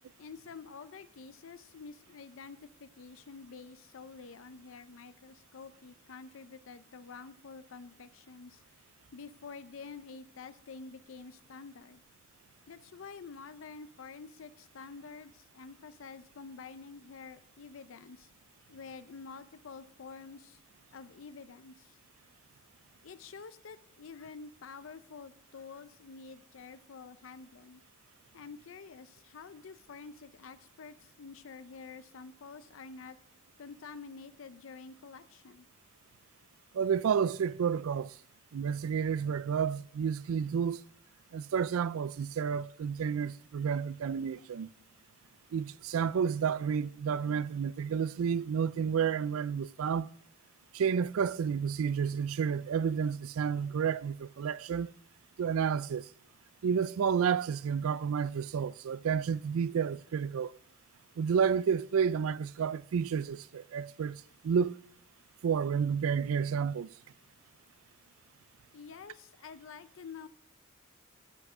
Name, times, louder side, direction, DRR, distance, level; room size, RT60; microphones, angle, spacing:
voice 1, 0.2-8.6 9.1-12.0 12.7-18.3 18.7-20.6 20.9-22.0 23.0-27.8 28.3-33.2 33.6-35.7 68.7-70.3, left 5 dB, 70° left, 0.5 m, -48 dB
voice 2, 36.7-38.1 38.5-40.8 41.3-44.7 45.5-50.1 50.7-54.9 55.4-56.1 56.6-60.5 61.2-64.7 65.4-66.9, right 7 dB, 80° right, 0.4 m, -30 dB
13.0 x 5.8 x 6.1 m
head